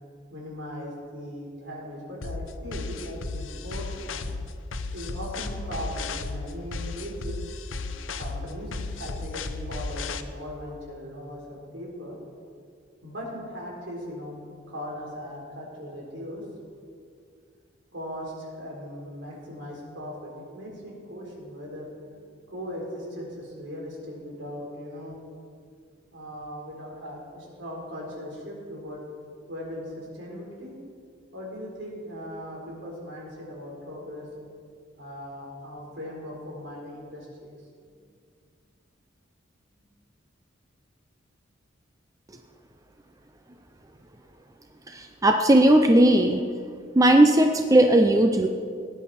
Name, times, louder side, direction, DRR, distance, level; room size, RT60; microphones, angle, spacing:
voice 1, 0.3-4.3 4.9-7.4 8.1-12.2 13.0-16.4 17.9-25.2 26.1-29.0 29.5-30.8 31.3-34.3 35.0-37.3 39.7-39.8, equal, 65° right, -3 dB, 4.2 m, -38 dB
sound 1, 2.2-10.2, left 3 dB, 90° left, 0.7 m, -34 dB
voice 2, 44.9-46.5 46.9-48.5, right 1 dB, 20° right, 5 dB, 0.5 m, -18 dB
19.0 x 10.5 x 4.3 m, 2.3 s
head